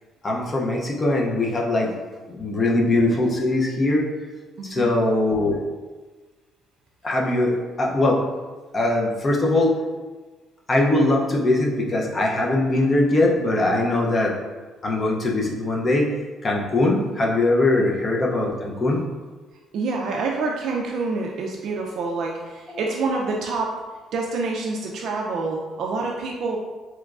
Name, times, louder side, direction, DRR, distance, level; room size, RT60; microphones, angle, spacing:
voice 1, 0.2-1.9 2.3-4.1 4.7-5.6 7.0-8.2 8.7-9.8 10.7-14.3 14.8-16.1 16.4-19.0, left 2 dB, 25° left, -1 dB, 0.4 m, -21 dB
voice 2, 4.6-4.9 17.8-17.9 19.7-23.8 24.1-26.6, right 3 dB, 55° right, 0 dB, 0.3 m, -27 dB
3.5 x 3.0 x 2.3 m, 1.3 s
cardioid pair, 170°, 0 cm